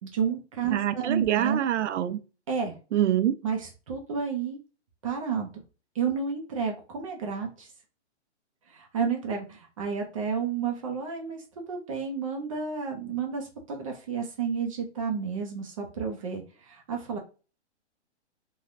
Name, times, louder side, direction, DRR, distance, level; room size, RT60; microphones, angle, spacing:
voice 1, 0.0-1.6 2.5-2.8 3.4-4.6 5.0-5.5 5.9-7.7 8.7-17.2, right 6 dB, 30° right, 0.5 m, -31 dB
voice 2, 0.7-2.2 2.9-3.3, right 11 dB, 85° right, 0.5 m, -25 dB
3.2 x 2.2 x 2.5 m
hypercardioid pair, 155°, 35 cm